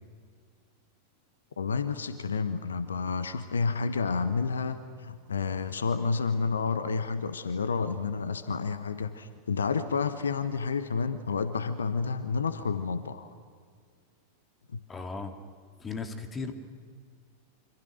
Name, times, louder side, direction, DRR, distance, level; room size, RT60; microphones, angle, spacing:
voice 1, 1.6-13.3 14.7-14.8, left 5 dB, 70° left, 12 dB, 1.2 m, -30 dB
voice 2, 14.9-15.3 15.8-16.5, left 4 dB, 20° left, 7 dB, 2.4 m, -36 dB
26.5 x 26.0 x 6.5 m, 2.1 s
figure-of-eight pair, 90°, 0 cm